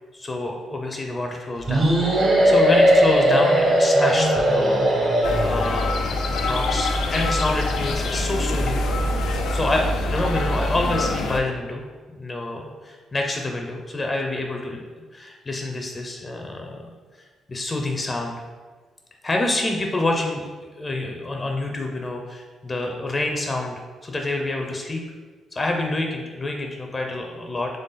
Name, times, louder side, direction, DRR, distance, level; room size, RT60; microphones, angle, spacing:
voice 1, 0.1-8.8 9.5-11.9 12.1-14.8 15.1-16.9 17.5-18.4 19.2-20.4 20.8-25.0 25.5-27.8, left 2 dB, 25° left, 2 dB, 0.6 m, -27 dB
sound 1, 1.7-5.8, equal, 50° right, 1.1 m, -18 dB
sound 2, 5.2-11.4, left 2 dB, 75° left, 0.5 m, -24 dB
4.0 x 3.4 x 3.8 m, 1.4 s
cardioid pair, 90°, 0 cm